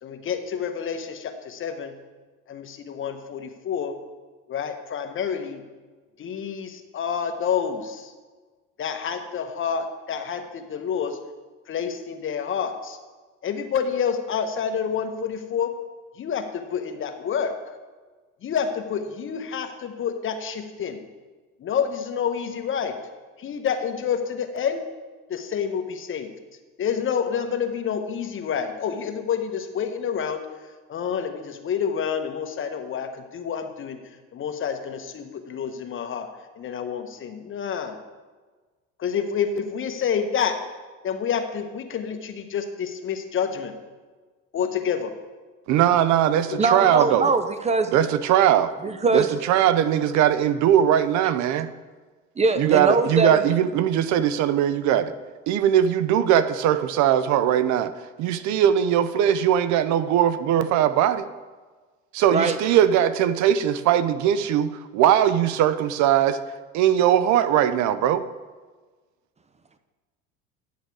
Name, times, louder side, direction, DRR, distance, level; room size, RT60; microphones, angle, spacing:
voice 1, 0.0-2.0 2.5-4.0 4.5-5.6 6.2-8.1 8.8-11.2 11.7-13.0 13.4-15.8 16.2-17.6 18.4-21.0 21.6-23.0 23.4-24.9 25.3-26.3 26.8-30.4 30.9-34.0 34.3-36.3 36.6-38.0 39.0-40.6 41.0-43.8 44.5-45.1 46.5-46.6, left 7 dB, 40° left, 7 dB, 1.0 m, -28 dB
voice 2, 45.7-47.3 47.9-48.7 49.1-51.7 52.6-55.1 55.5-57.9 58.2-61.3 62.1-66.4 66.7-68.2, right 10 dB, 60° right, 12 dB, 0.6 m, -20 dB
voice 3, 46.6-47.9 48.8-49.3 52.4-53.4 62.3-62.6, right 3 dB, 20° right, 9 dB, 0.6 m, -22 dB
10.5 x 6.5 x 4.7 m, 1.4 s
supercardioid pair, 100°, 32 cm